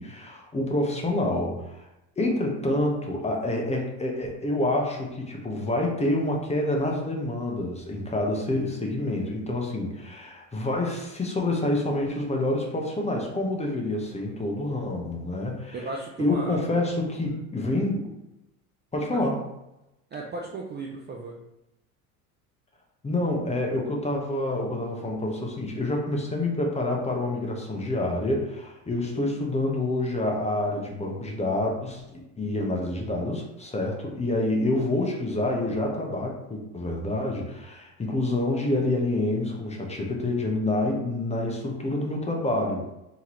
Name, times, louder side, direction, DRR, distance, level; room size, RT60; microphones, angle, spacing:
voice 1, 0.0-1.8 2.2-15.7 16.2-18.1 18.9-19.4 23.0-32.0 32.4-42.9, left 1 dB, 15° left, 0 dB, 0.9 m, -27 dB
voice 2, 15.7-16.7 17.3-17.4 19.1-19.2 20.1-21.4, right 3 dB, 25° right, -1 dB, 0.5 m, -35 dB
3.6 x 3.0 x 3.0 m, 0.89 s
hypercardioid pair, 75°, 47 cm